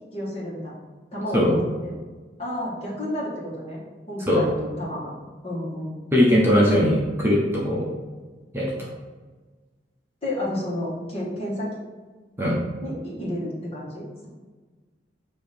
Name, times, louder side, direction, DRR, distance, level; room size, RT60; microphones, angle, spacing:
voice 1, 0.1-0.7 1.1-1.9 2.4-3.8 4.1-5.1 5.4-6.0 10.2-11.7 12.8-14.3, left 1 dB, 35° left, -5 dB, 1.7 m, -31 dB
voice 2, 6.1-7.9 8.5-8.7 12.4-12.6, equal, 15° right, -6 dB, 1.0 m, -19 dB
6.3 x 3.0 x 5.1 m, 1.3 s
head